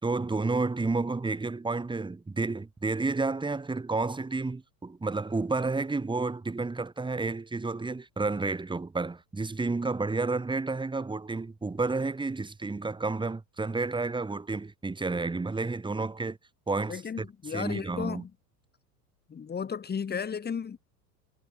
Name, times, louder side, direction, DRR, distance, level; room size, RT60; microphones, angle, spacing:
voice 1, 0.0-16.4 16.7-17.3 17.5-18.2, right 3 dB, 10° right, 5.1 m, -31 dB
voice 2, 16.9-18.3 19.3-20.8, left 6 dB, 20° left, 5.3 m, -34 dB
figure-of-eight pair, 85°, 49 cm